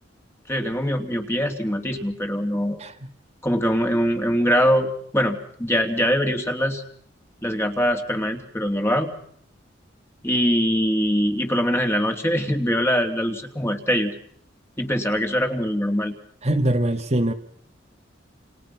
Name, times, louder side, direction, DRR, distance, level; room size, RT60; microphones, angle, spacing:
voice 1, 0.5-2.8 3.4-6.8 7.4-9.1 10.2-14.1 14.8-16.1, equal, 15° left, 3.1 m, -23 dB
voice 2, 16.4-17.3, right 1 dB, 35° right, 1.8 m, -22 dB
29.5 x 29.5 x 5.9 m
head